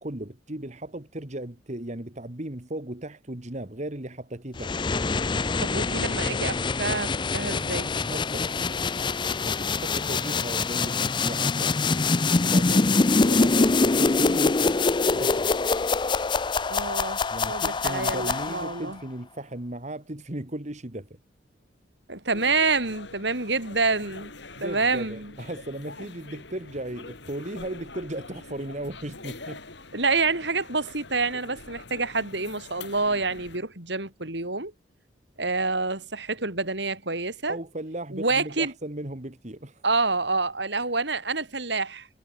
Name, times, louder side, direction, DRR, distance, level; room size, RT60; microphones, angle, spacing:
voice 1, 0.0-4.8 8.0-8.9 9.4-12.1 12.4-14.8 15.1-15.5 17.3-21.1 24.5-29.6 37.5-39.8, right 1 dB, 40° right, 1.9 m, -36 dB
sound 1, 4.6-18.9, left 4 dB, 25° left, 0.5 m, -24 dB
voice 2, 5.6-7.9 16.7-17.2 17.5-19.0 22.1-24.3 24.6-25.3 29.9-34.7 35.4-37.6 38.1-38.7 39.8-42.1, right 3 dB, 65° right, 4.7 m, -27 dB
sound 2, 22.3-33.6, left 3 dB, 65° left, 6.3 m, -44 dB
head